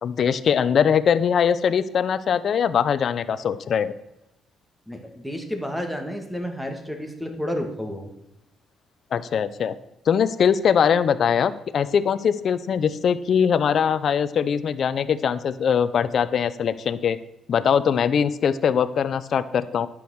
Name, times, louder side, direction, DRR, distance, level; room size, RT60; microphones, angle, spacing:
voice 1, 0.0-3.9 9.1-9.7 10.1-17.2 17.5-19.9, left 7 dB, 60° left, 14 dB, 0.6 m, -21 dB
voice 2, 4.9-8.1, equal, ahead, 4 dB, 2.0 m, -31 dB
10.0 x 6.3 x 6.5 m, 0.90 s
cardioid pair, 90°, 0 cm